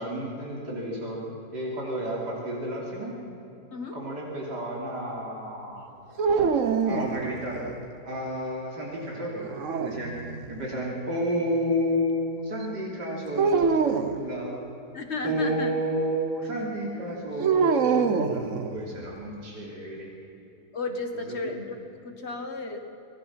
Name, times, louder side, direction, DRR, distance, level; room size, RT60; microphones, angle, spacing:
voice 1, 0.0-3.2 3.9-6.0 6.8-7.6 8.0-10.2 10.5-14.6 15.2-20.1 21.3-21.5, equal, 90° right, -3 dB, 3.8 m, -31 dB
sound 1, 6.2-7.7 9.4-10.5 13.4-14.2 17.4-19.1, right 5 dB, 55° right, 1.3 m, -25 dB
voice 2, 14.9-15.7 20.7-21.8 22.0-22.8, left 3 dB, 40° left, 5 dB, 2.0 m, -33 dB
25.5 x 18.5 x 5.9 m, 2.9 s
omnidirectional pair, 1.8 m